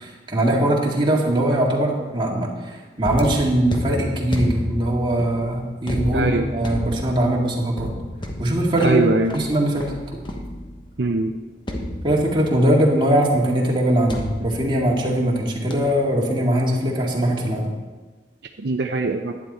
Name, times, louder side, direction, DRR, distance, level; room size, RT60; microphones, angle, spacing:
voice 1, 0.0-7.9 8.4-9.0 9.3-9.9 12.0-17.7, right 1 dB, 30° right, -3 dB, 2.1 m, -21 dB
sound 1, 3.0-10.9 11.7-12.7 14.1-15.4 15.7-16.0, left 1 dB, 25° left, 1.1 m, -31 dB
voice 2, 6.1-6.5 8.8-9.3 11.0-11.3 18.6-19.3, right 2 dB, 65° right, 4 dB, 0.6 m, -21 dB
11.5 x 9.9 x 4.3 m, 1.3 s
head